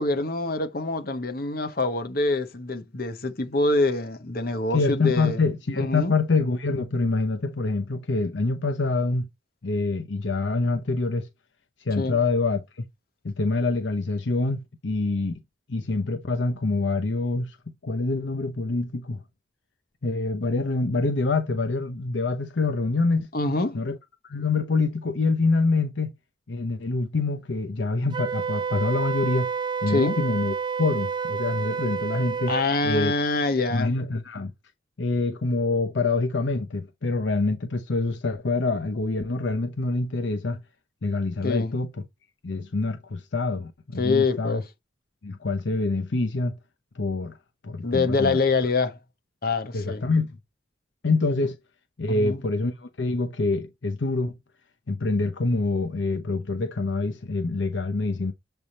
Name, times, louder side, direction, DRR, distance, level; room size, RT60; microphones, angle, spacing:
voice 1, 0.0-5.4 5.8-6.1 12.0-12.2 23.3-23.8 29.9-30.2 32.5-34.0 41.4-41.7 44.0-44.6 47.8-49.0 49.4-50.0 52.1-52.4, left 3 dB, 50° left, 1.1 m, -25 dB
voice 2, 4.7-9.3 9.6-11.3 11.8-12.8 13.2-15.4 15.7-17.6 17.8-19.2 20.0-23.3 23.7-24.0 24.2-26.1 26.5-29.5 29.8-32.5 32.8-33.1 33.7-34.5 35.0-40.6 41.0-41.9 42.4-44.6 45.2-46.6 46.9-47.4 47.6-48.4 49.7-50.4 51.0-51.6 52.0-54.4 54.9-58.3, left 3 dB, 70° left, 0.8 m, -26 dB
Wind instrument woodwind instrument, 28.1-32.7, right 6 dB, 25° right, 0.4 m, -29 dB
7.3 x 3.5 x 4.1 m
head